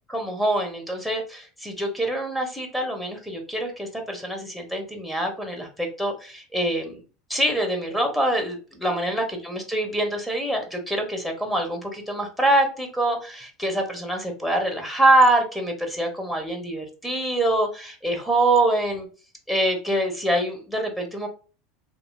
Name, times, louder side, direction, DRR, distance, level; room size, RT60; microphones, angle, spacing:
voice 1, 0.1-7.0 7.3-19.1 19.5-21.3, right 1 dB, 5° left, 2 dB, 0.9 m, -25 dB
3.1 x 2.6 x 2.3 m, 0.36 s
hypercardioid pair, 90°, 0 cm